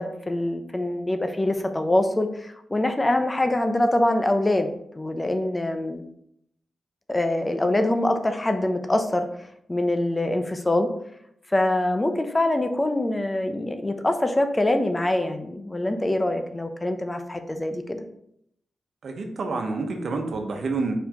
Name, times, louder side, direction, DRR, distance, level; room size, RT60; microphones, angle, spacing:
voice 1, 0.0-4.7 4.9-6.0 7.1-9.3 9.7-10.9 11.5-18.0, left 1 dB, 25° left, 7 dB, 0.8 m, -24 dB
voice 2, 19.0-20.9, right 3 dB, 70° right, 3 dB, 1.1 m, -28 dB
5.6 x 4.6 x 3.7 m, 0.73 s
cardioid pair, 50°, 0 cm